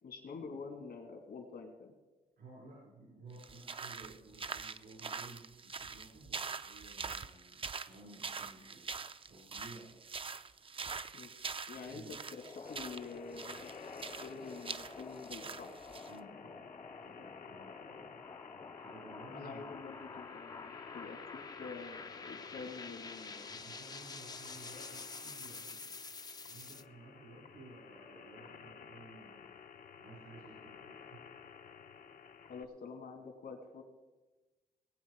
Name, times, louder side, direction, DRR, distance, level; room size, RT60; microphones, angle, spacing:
voice 1, 0.0-1.9 11.1-11.3 11.7-15.8 19.3-23.5 32.5-33.8, left 4 dB, 80° left, 3 dB, 2.6 m, -47 dB
voice 2, 2.4-8.9 9.2-10.0 11.8-12.1 16.1-18.3 18.7-19.7 23.4-25.9 26.5-29.4 30.0-31.2 32.2-32.4, right 2 dB, 85° right, -6 dB, 4.8 m, -55 dB
sound 1, 3.4-16.2, right 5 dB, 35° right, 0.5 m, -44 dB
sound 2, 12.2-26.8, left 4 dB, 25° left, 0.4 m, -49 dB
sound 3, 12.6-32.6, left 6 dB, 60° left, 0.7 m, -54 dB
19.5 x 8.7 x 4.8 m, 1.2 s
cardioid pair, 90°, 16 cm